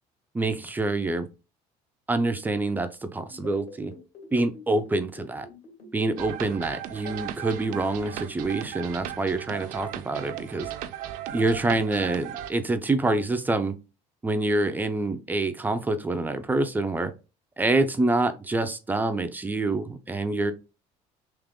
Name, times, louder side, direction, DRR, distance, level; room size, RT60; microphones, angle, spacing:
voice 1, 0.3-1.3 2.1-3.9 4.3-5.5 5.9-10.7 11.3-13.7 14.2-17.1 17.6-20.5, right 2 dB, 15° right, 0.4 m, -26 dB
sound 1, 3.3-7.1, left 4 dB, 55° left, 2.1 m, -45 dB
sound 2, 6.2-12.5, right 11 dB, 85° right, 0.5 m, -37 dB
3.6 x 2.9 x 3.6 m
cardioid pair, 145°, 14 cm